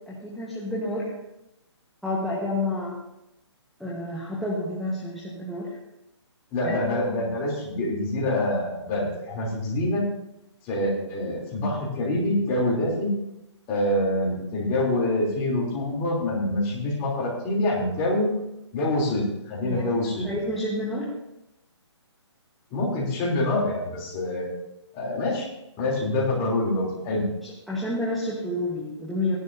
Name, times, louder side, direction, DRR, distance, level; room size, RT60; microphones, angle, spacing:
voice 1, 0.1-1.1 2.0-2.9 3.8-5.8 6.6-6.8 19.7-19.9 20.2-21.1 27.4-29.4, left 1 dB, ahead, -9 dB, 1.3 m, -29 dB
voice 2, 6.5-10.0 10.6-13.1 13.7-18.3 18.7-20.3 22.7-24.5 24.9-25.5 25.8-27.3, left 1 dB, 20° left, -4 dB, 3.4 m, -26 dB
15.5 x 11.0 x 2.8 m, 0.87 s
hypercardioid pair, 160°, 15 cm